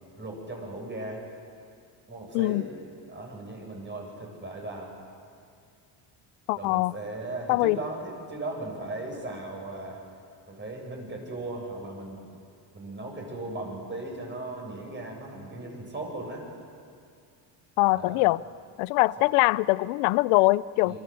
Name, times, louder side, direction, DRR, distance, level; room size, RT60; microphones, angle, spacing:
voice 1, 0.2-1.2 2.1-2.7 3.1-4.9 6.5-10.0 10.5-12.3 12.7-16.5 17.9-18.3 20.8-21.0, right 2 dB, 25° right, 0 dB, 7.7 m, -37 dB
voice 2, 6.5-6.9 7.5-7.8 17.8-18.4 18.8-21.0, left 21 dB, 85° left, 20 dB, 0.7 m, -23 dB
26.5 x 23.0 x 7.9 m, 2.3 s
cardioid pair, 105°, 49 cm